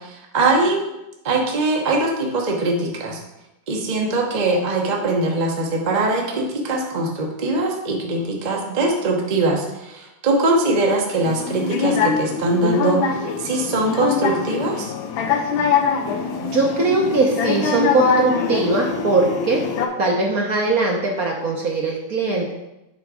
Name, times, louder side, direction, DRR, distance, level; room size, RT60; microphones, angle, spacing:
voice 1, 0.3-0.8 1.2-3.2 3.7-9.6 9.9-13.0 13.4-14.9, right 2 dB, 35° right, 0 dB, 0.7 m, -21 dB
sound 1, 11.2-19.9, left 5 dB, 75° left, 1.5 m, -23 dB
voice 2, 16.4-19.6 20.0-22.5, right 3 dB, 55° right, 0 dB, 1.1 m, -20 dB
7.5 x 4.0 x 4.8 m, 0.93 s
omnidirectional pair, 2.2 m